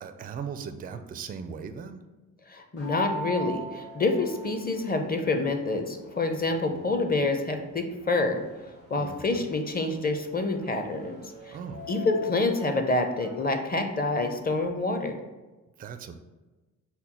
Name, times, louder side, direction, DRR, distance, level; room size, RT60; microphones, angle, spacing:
voice 1, 0.0-2.0 9.0-9.5 11.5-11.9 15.8-16.1, right 6 dB, 20° right, 9 dB, 0.4 m, -38 dB
voice 2, 2.5-8.4 8.9-11.6 11.9-15.2, left 2 dB, 20° left, 6 dB, 0.6 m, -27 dB
sound 1, 2.8-14.7, equal, 90° left, 1.1 m, -43 dB
5.6 x 2.1 x 4.2 m, 1.2 s
hypercardioid pair, 40°, 45 cm